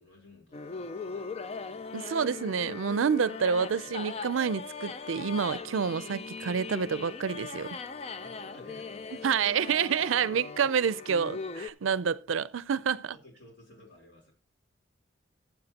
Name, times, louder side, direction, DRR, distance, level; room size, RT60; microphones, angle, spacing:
voice 1, 0.0-1.3 1.7-2.0 8.2-9.3 12.7-12.8 13.1-14.3, left 1 dB, 65° left, 3.7 m, -55 dB
sound 1, 0.5-11.7, left 4 dB, 30° left, 0.4 m, -40 dB
voice 2, 1.9-7.8 9.2-13.1, right 6 dB, 85° right, 0.5 m, -28 dB
15.0 x 7.4 x 2.8 m
head